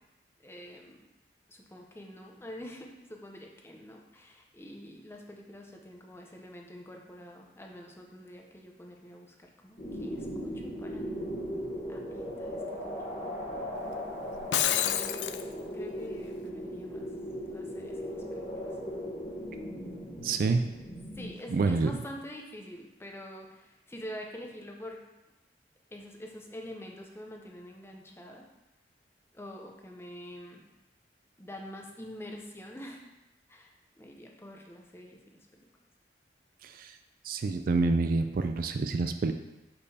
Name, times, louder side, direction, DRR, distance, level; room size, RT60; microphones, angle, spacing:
voice 1, 0.4-1.1 1.5-11.1 11.9-13.0 14.7-15.4 15.7-17.1 17.5-18.7 21.2-25.0 25.9-28.5 29.3-30.6 31.4-33.0 33.5-35.2 35.6-35.7, equal, 15° left, 1 dB, 0.6 m, -46 dB
sound 1, 9.8-21.3, equal, 35° left, 1.2 m, -38 dB
Shatter, 14.3-15.4, left 11 dB, 70° left, 0.3 m, -28 dB
voice 2, 20.2-20.6 21.5-22.0 36.6-36.9 37.2-39.3, right 3 dB, 50° right, 8 dB, 0.3 m, -27 dB
6.5 x 5.2 x 2.8 m, 0.98 s
head